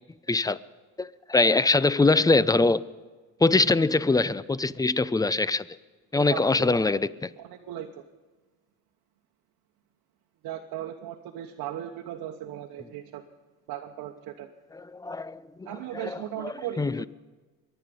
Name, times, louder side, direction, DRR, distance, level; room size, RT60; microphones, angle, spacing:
voice 1, 0.3-0.6 1.0-2.9 3.4-5.6 6.1-7.3 14.7-15.7 15.9-17.1, left 3 dB, 10° left, 0.5 m, -23 dB
voice 2, 6.3-6.8 7.4-7.9 10.4-13.2 13.7-14.5 15.6-17.1, right 11 dB, 70° right, 1.1 m, -37 dB
23.5 x 9.2 x 5.3 m
supercardioid pair, 70°, 37 cm